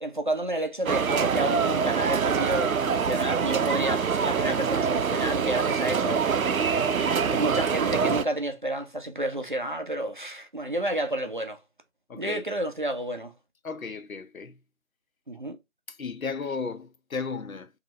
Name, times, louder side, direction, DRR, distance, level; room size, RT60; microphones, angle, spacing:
voice 1, 0.0-6.3 7.3-11.6 12.2-13.3 15.3-15.6, right 1 dB, 40° right, 0.5 m, -30 dB
sound 1, 0.9-8.2, right 6 dB, 85° right, 0.6 m, -25 dB
voice 2, 12.1-12.4 13.6-14.6 15.9-17.7, left 5 dB, 80° left, 0.8 m, -34 dB
3.1 x 2.8 x 3.8 m
figure-of-eight pair, 160°, 41 cm